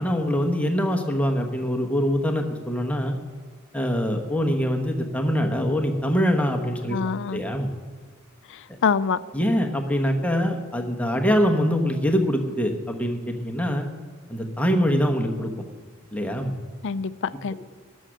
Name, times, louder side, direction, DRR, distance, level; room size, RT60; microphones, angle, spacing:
voice 1, 0.0-3.2 3.7-7.0 7.3-7.7 9.3-13.9 14.3-15.5 16.1-16.5, equal, 5° left, 3 dB, 1.0 m, -24 dB
voice 2, 6.9-7.4 8.5-9.2 16.8-17.5, left 6 dB, 55° left, 16 dB, 0.4 m, -25 dB
13.0 x 6.4 x 8.9 m, 1.5 s
head